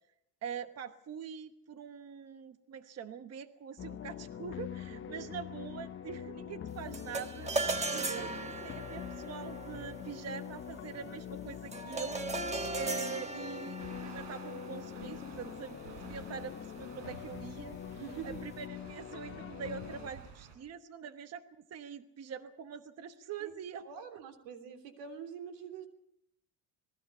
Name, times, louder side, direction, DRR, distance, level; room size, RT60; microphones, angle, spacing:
voice 1, 0.4-24.2, right 7 dB, 35° right, 9 dB, 1.1 m, -44 dB
sound 1, 3.8-20.1, left 9 dB, 30° left, 0.7 m, -44 dB
voice 2, 4.9-5.3 8.1-8.5 17.9-18.4 23.4-23.5 23.8-25.9, right 7 dB, 90° right, 6 dB, 3.4 m, -45 dB
sound 2, 6.9-16.4, right 3 dB, 15° right, 1.3 m, -39 dB
sound 3, 13.8-20.6, right 5 dB, 70° right, 4.9 m, -52 dB
26.0 x 19.5 x 5.6 m, 0.76 s
cardioid pair, 140°, 42 cm